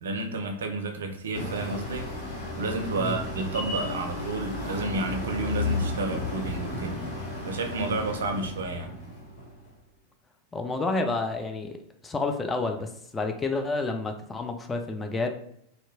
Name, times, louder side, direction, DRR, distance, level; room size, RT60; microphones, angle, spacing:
voice 1, 0.0-2.1 2.6-7.0 7.5-8.9, right 3 dB, 65° right, 5 dB, 0.4 m, -31 dB
sound 1, 1.3-9.7, left 3 dB, 50° left, 0.7 m, -34 dB
voice 2, 10.5-11.8 12.0-15.3, left 3 dB, 15° left, 4 dB, 0.3 m, -29 dB
2.6 x 2.1 x 2.6 m, 0.72 s
figure-of-eight pair, 90°, 0 cm